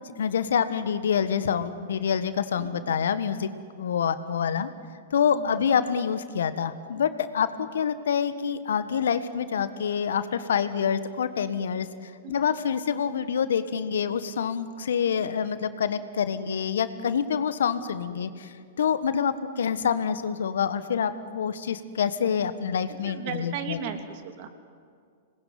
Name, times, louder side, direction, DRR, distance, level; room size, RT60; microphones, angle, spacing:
voice 1, 0.0-3.5 3.7-4.7 5.1-23.8, left 7 dB, 70° left, 12 dB, 1.4 m, -27 dB
voice 2, 2.6-3.0 5.3-5.8 7.5-7.6 12.2-12.4 12.9-13.3 15.1-15.3 17.8-17.9 19.5-19.6 22.9-24.5, right 7 dB, 50° right, 7 dB, 2.9 m, -38 dB
26.5 x 20.0 x 9.6 m, 2.2 s
figure-of-eight pair, 105°, 0 cm